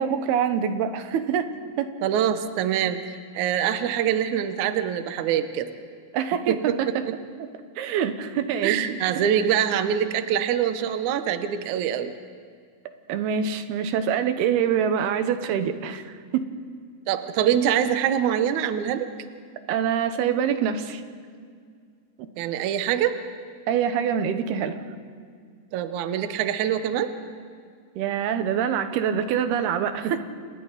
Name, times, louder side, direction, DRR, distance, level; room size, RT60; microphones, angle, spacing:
voice 1, 0.0-1.9 6.1-7.0 7.8-9.3 13.1-16.4 19.7-21.0 22.2-22.3 23.7-24.8 28.0-30.2, right 8 dB, 85° right, 9 dB, 3.0 m, -25 dB
voice 2, 2.0-3.0 3.3-5.7 6.5-7.2 8.6-12.1 17.1-19.1 22.4-23.2 25.7-27.1 30.0-30.2, right 9 dB, 70° right, 9 dB, 2.0 m, -24 dB
30.0 x 28.0 x 4.1 m, 2.1 s
omnidirectional pair, 4.5 m